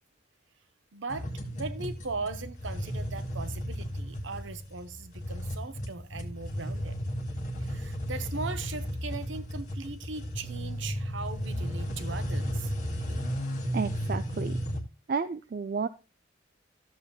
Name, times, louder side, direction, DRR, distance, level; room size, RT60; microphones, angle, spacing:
voice 1, 0.9-7.0 7.6-13.2, right 4 dB, 70° right, 0.9 m, -39 dB
sound 1, 1.1-14.8, equal, 35° left, 1.6 m, -34 dB
voice 2, 13.7-14.6 15.1-15.9, right 5 dB, 45° right, 0.3 m, -31 dB
13.5 x 7.2 x 2.3 m
head